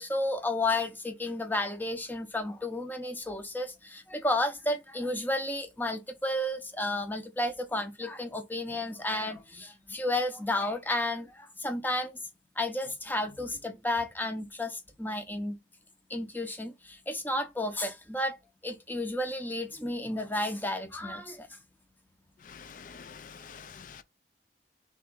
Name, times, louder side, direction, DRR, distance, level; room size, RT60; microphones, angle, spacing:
voice 1, 0.0-12.1 12.6-15.5 16.1-18.4 18.6-21.5, left 1 dB, 10° left, 0.7 m, -32 dB
voice 2, 22.4-24.0, left 6 dB, 50° left, 0.4 m, -47 dB
3.4 x 3.0 x 4.5 m
head